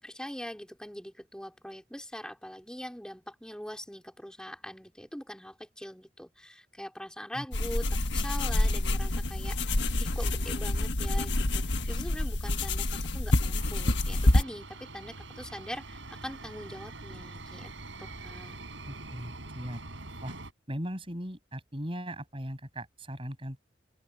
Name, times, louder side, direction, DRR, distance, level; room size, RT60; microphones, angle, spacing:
voice 1, 0.0-17.7 18.0-18.6, equal, 5° left, 4.1 m, -42 dB
sound 1, 7.5-14.4, left 1 dB, 70° left, 1.4 m, -27 dB
sound 2, 13.6-20.5, right 2 dB, 85° right, 4.8 m, -44 dB
voice 2, 18.9-19.8 20.2-20.3 20.7-23.6, equal, 30° right, 6.9 m, -38 dB
open air
head